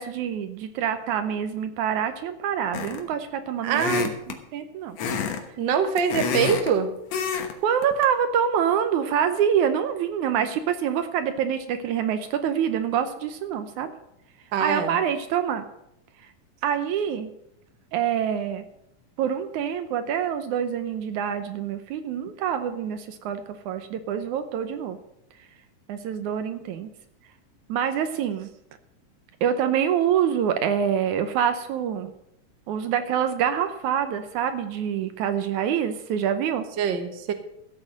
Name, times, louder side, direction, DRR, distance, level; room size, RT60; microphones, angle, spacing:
voice 1, 0.0-5.0 7.6-13.9 14.6-15.7 16.2-16.3 16.6-17.3 17.9-18.6 19.2-25.0 25.9-26.9 27.7-28.5 29.4-32.1 32.7-36.7, right 8 dB, 75° right, 9 dB, 2.1 m, -26 dB
sound 1, 2.7-3.1 3.7-4.4 5.0-5.4 5.7-6.7 7.1-7.5 7.8-8.0, left 6 dB, 60° left, 2.2 m, -28 dB
voice 2, 3.6-4.1 5.6-6.9 14.5-15.0 36.8-37.3, right 7 dB, 55° right, 6 dB, 1.3 m, -24 dB
14.0 x 8.6 x 6.4 m, 0.79 s
omnidirectional pair, 3.8 m